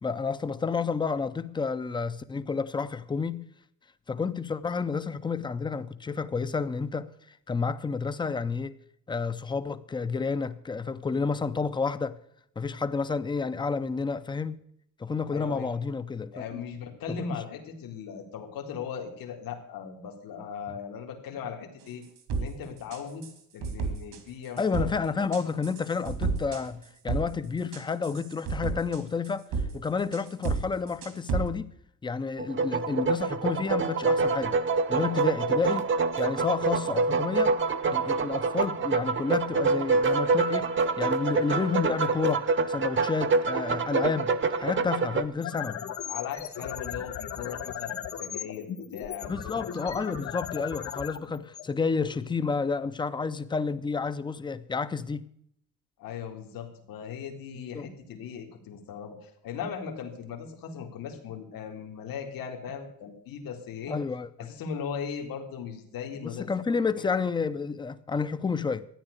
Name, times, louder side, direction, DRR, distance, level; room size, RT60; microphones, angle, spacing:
voice 1, 0.0-3.5 4.1-8.8 9.1-12.2 12.6-14.6 15.0-16.4 17.1-17.4 24.6-29.5 29.7-31.7 32.0-34.6 34.9-35.9 36.2-37.6 37.9-44.3 44.6-45.8 49.3-55.2 57.7-57.9 63.9-64.3 66.2-68.9, left 5 dB, 15° left, 0.5 m, -30 dB
voice 2, 15.3-15.7 16.3-22.0 22.4-23.3 23.5-24.9 46.1-50.1 56.0-64.0 64.4-66.5 67.0-67.1, left 7 dB, 80° left, 2.3 m, -38 dB
sound 1, 22.3-22.5 22.9-23.3 23.6-24.2 24.6-24.9 25.3-27.3 27.6-29.7 30.1-30.6 30.9-31.5, right 4 dB, 80° right, 2.7 m, -31 dB
sound 2, 32.4-45.2, right 4 dB, 35° right, 0.8 m, -26 dB
sound 3, 45.2-52.3, left 9 dB, 55° left, 1.7 m, -37 dB
13.5 x 9.8 x 6.4 m
cardioid pair, 180°, 34 cm